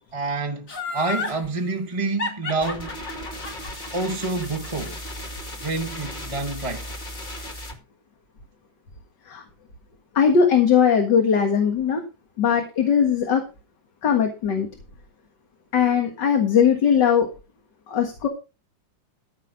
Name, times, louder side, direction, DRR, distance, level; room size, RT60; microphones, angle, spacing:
voice 1, 0.1-3.0 3.9-5.0 5.6-6.9, right 3 dB, 20° right, 1.0 m, -28 dB
Laughter, 0.7-1.4 2.2-5.3 5.7-5.8, left 3 dB, 45° left, 3.1 m, -31 dB
sound 1, 2.6-7.7, left 1 dB, 25° left, 2.1 m, -36 dB
voice 2, 10.2-12.0 12.4-13.4 14.0-14.7 15.7-17.3 17.9-18.3, left 7 dB, 65° left, 2.3 m, -19 dB
14.5 x 5.8 x 5.2 m
omnidirectional pair, 2.0 m